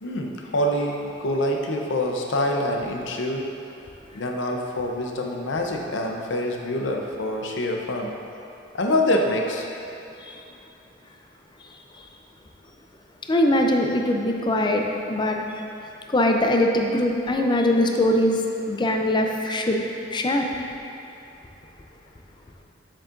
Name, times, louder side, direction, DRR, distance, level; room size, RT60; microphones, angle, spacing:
voice 1, 0.0-3.5 4.1-8.1 8.7-9.7, left 1 dB, 70° left, 1 dB, 0.7 m, -25 dB
voice 2, 13.3-15.4 16.1-18.4 18.7-19.8 20.1-20.5, left 1 dB, 25° left, 2 dB, 0.5 m, -21 dB
7.3 x 7.3 x 2.5 m, 2.8 s
head